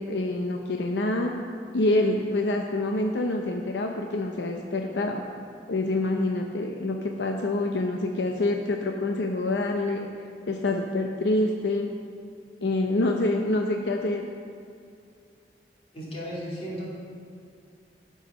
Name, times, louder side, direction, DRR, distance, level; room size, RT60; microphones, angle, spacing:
voice 1, 0.0-1.3 1.7-5.2 5.7-10.1 10.5-11.9 12.6-14.3, left 2 dB, 80° left, 2 dB, 0.6 m, -26 dB
voice 2, 15.9-16.9, equal, 35° left, -6 dB, 2.6 m, -35 dB
12.5 x 4.8 x 5.5 m, 2.3 s
head